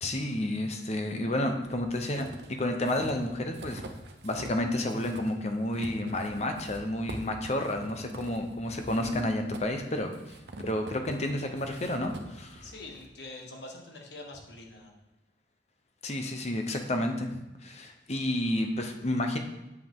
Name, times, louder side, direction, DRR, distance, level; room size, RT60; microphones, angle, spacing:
voice 1, 0.0-2.3 2.6-3.8 4.2-10.1 10.6-12.7 16.0-19.4, left 1 dB, 35° left, 5 dB, 0.8 m, -30 dB
sound 1, 1.6-4.6 4.9-13.1, right 2 dB, 65° right, 0.9 m, -45 dB
voice 2, 12.6-15.0, left 2 dB, 70° left, 1 dB, 1.5 m, -45 dB
8.3 x 7.6 x 3.7 m, 0.96 s
head